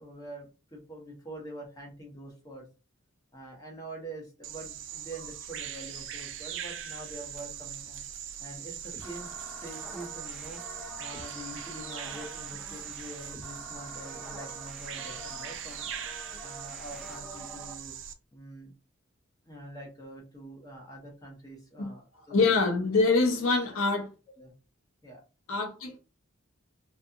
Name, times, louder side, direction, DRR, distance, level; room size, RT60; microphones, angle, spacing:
voice 1, 0.0-2.7 3.3-8.0 8.4-10.6 11.0-15.9 16.4-17.9 18.3-18.7 19.4-22.4 24.4-24.5 25.0-25.2, right 1 dB, 20° left, 0.9 m, -45 dB
Bird vocalization bird call bird song, 4.4-18.1, right 9 dB, 65° right, 0.4 m, -41 dB
sound 1, 8.9-17.7, equal, ahead, 0.4 m, -46 dB
voice 2, 22.3-24.1 25.5-26.0, left 3 dB, 90° left, 0.6 m, -25 dB
2.4 x 2.3 x 2.7 m
head